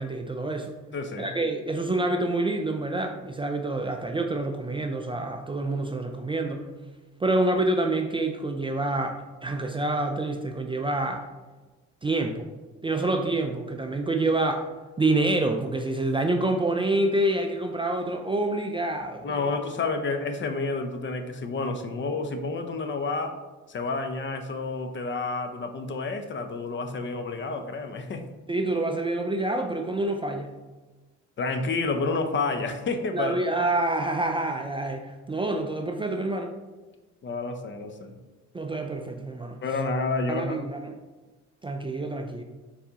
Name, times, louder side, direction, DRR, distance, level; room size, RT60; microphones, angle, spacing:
voice 1, 0.0-0.8 1.2-6.7 7.2-11.3 12.0-12.5 12.8-14.7 15.0-19.4 28.5-30.5 33.1-36.5 38.5-39.6 40.3-41.0 41.6-42.4, right 2 dB, 15° right, 4 dB, 0.3 m, -27 dB
voice 2, 0.9-1.3 19.2-23.4 23.7-28.2 31.4-33.4 37.2-38.2 39.6-40.6, left 3 dB, 40° left, 6 dB, 0.6 m, -29 dB
4.4 x 4.1 x 2.8 m, 1.2 s
cardioid pair, 90°, 30 cm